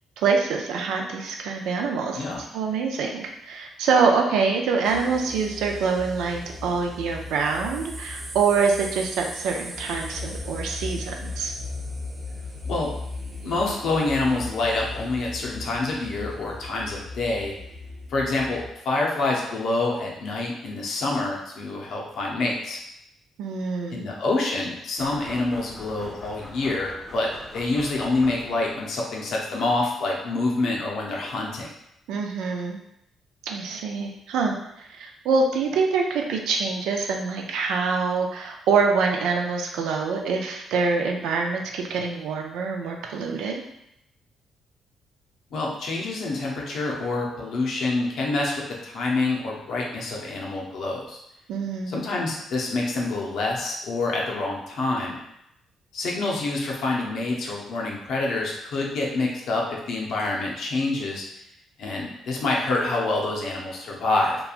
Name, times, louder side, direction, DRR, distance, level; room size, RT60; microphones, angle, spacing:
voice 1, 0.2-2.2 2.5-11.5 23.4-24.0 32.1-32.8 33.4-43.6 51.5-52.0, right 5 dB, 90° right, 2 dB, 0.4 m, -25 dB
sound 1, 4.8-18.7, left 2 dB, 40° right, 0.6 m, -37 dB
voice 2, 13.4-17.5 18.1-22.8 23.9-27.3 27.5-31.7 45.5-48.5 48.8-51.2 51.9-55.2 55.9-61.2 61.8-64.4, left 2 dB, 70° left, -2 dB, 0.6 m, -27 dB
sound 2, 25.0-28.8, left 1 dB, 20° left, 0.6 m, -42 dB
2.9 x 2.3 x 2.4 m, 0.81 s
cardioid pair, 90°, 0 cm